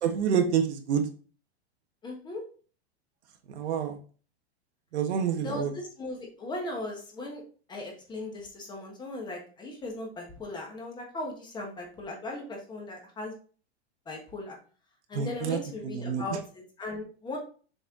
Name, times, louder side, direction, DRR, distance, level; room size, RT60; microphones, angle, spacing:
voice 1, 0.0-1.0 3.5-4.0 4.9-5.7 15.1-15.6 15.8-16.2, right 7 dB, 80° right, 5 dB, 1.4 m, -27 dB
voice 2, 2.0-2.4 5.4-7.4 7.7-13.3 14.1-14.6 15.1-17.4, left 2 dB, 15° left, 1 dB, 1.3 m, -38 dB
6.8 x 4.3 x 3.8 m, 0.40 s
supercardioid pair, 160°, 33 cm